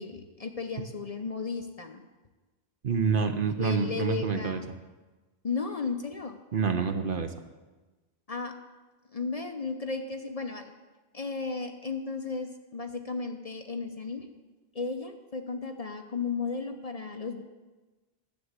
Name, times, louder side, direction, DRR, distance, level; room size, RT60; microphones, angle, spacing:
voice 1, 0.0-2.0 3.6-4.7 5.4-6.4 8.3-8.5 9.1-10.7 11.1-14.3 14.7-17.4, left 4 dB, 40° left, 5 dB, 0.7 m, -34 dB
voice 2, 2.8-4.6 6.5-7.3, right 5 dB, 55° right, 7 dB, 0.9 m, -27 dB
10.5 x 7.2 x 8.0 m, 1.2 s
omnidirectional pair, 1.1 m